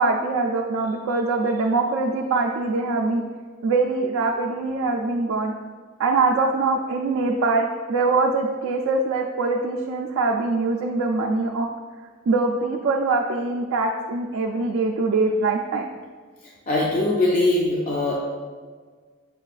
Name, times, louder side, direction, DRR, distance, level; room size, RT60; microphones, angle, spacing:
voice 1, 0.0-3.2 3.6-5.5 6.0-11.7 12.3-15.8, right 3 dB, 70° right, 0 dB, 0.3 m, -23 dB
voice 2, 16.7-18.1, left 2 dB, 40° left, -3 dB, 0.4 m, -21 dB
6.4 x 2.3 x 2.4 m, 1.5 s
head